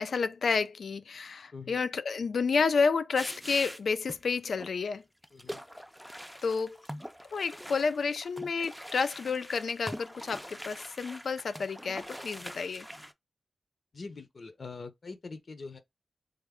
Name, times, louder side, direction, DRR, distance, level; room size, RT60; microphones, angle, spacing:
voice 1, 0.0-5.0 6.4-6.8 7.3-12.9, left 5 dB, 90° left, 0.3 m, -30 dB
sound 1, 3.2-4.2 4.5-4.7 5.2-13.1, equal, ahead, 0.3 m, -43 dB
voice 2, 13.9-15.8, left 4 dB, 55° left, 0.6 m, -43 dB
3.4 x 2.1 x 3.5 m
wide cardioid pair, 115°, 0 cm